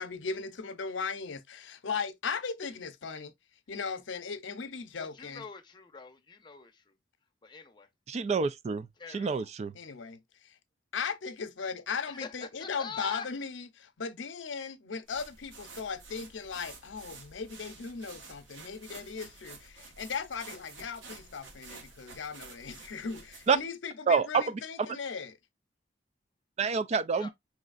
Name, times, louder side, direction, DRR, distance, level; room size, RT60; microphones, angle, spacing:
voice 1, 0.0-3.3 3.7-5.4 9.7-10.5 10.9-25.4, left 5 dB, 80° left, 0.7 m, -37 dB
voice 2, 5.0-6.9 7.4-7.9 9.0-9.5 12.1-13.3 27.1-27.3, left 5 dB, 25° left, 0.7 m, -44 dB
voice 3, 8.1-8.9 9.1-9.7 23.5-23.6 24.1-24.4 26.6-27.3, right 5 dB, 35° right, 0.3 m, -27 dB
sound 1, 15.1-23.6, right 4 dB, 90° right, 1.2 m, -50 dB
4.9 x 3.2 x 2.3 m
head